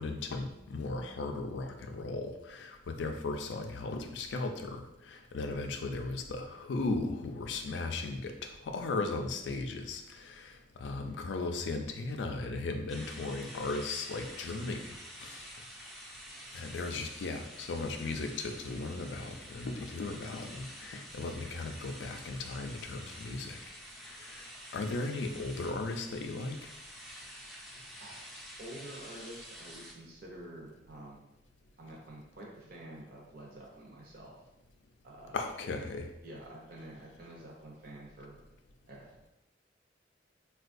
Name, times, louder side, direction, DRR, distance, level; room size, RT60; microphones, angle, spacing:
voice 1, 0.0-14.8 15.2-15.4 16.5-23.6 24.1-24.4 24.7-26.7 35.3-36.1, left 3 dB, 75° left, 5 dB, 0.4 m, -37 dB
sound 1, 12.9-29.9, equal, ahead, 0.4 m, -49 dB
voice 2, 28.0-28.3 28.6-31.2 31.8-34.4 35.0-35.4 36.2-38.4 38.9-39.1, right 1 dB, 55° right, -3 dB, 0.6 m, -48 dB
4.3 x 2.3 x 2.5 m, 0.91 s
head